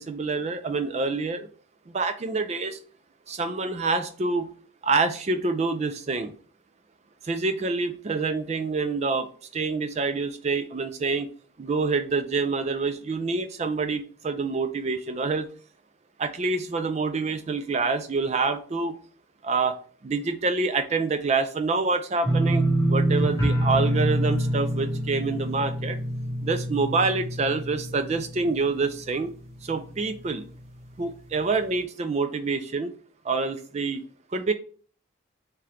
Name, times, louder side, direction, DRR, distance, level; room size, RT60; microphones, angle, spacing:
voice 1, 0.0-1.5 1.9-2.8 3.3-4.5 4.8-6.3 7.2-9.3 9.5-11.3 11.6-15.5 16.2-19.0 19.4-19.8 20.0-26.0 26.4-29.3 29.6-30.4 31.0-32.9 33.2-34.0 34.3-34.5, right 4 dB, 30° right, 9 dB, 0.3 m, -27 dB
sound 1, 22.2-29.1 29.4-30.0 30.3-30.4, right 1 dB, 15° left, 1.1 m, -26 dB
3.6 x 2.9 x 3.3 m, 0.42 s
head